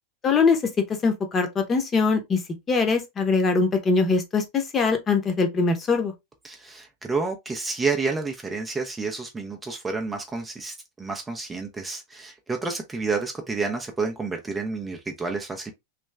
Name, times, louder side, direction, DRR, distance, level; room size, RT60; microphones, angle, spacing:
voice 1, 0.2-0.6 1.0-2.4 2.7-6.1, left 4 dB, 20° left, 1.0 m, -22 dB
voice 2, 6.4-15.7, right 4 dB, 15° right, 0.7 m, -30 dB
3.3 x 3.1 x 3.3 m
figure-of-eight pair, 90°, 0 cm